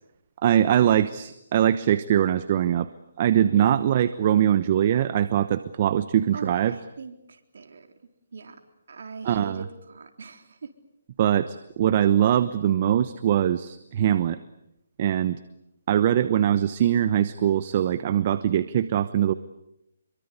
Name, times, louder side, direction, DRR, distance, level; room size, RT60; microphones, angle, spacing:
voice 1, 0.4-2.9 3.2-6.7 9.2-9.6 11.2-14.4 15.0-15.4 15.9-19.3, right 10 dB, 40° right, 14 dB, 1.0 m, -22 dB
voice 2, 6.3-7.9 8.3-8.6 8.9-10.7, right 4 dB, 70° right, 6 dB, 3.9 m, -40 dB
26.5 x 23.5 x 8.3 m, 0.86 s
hypercardioid pair, 155°, 0 cm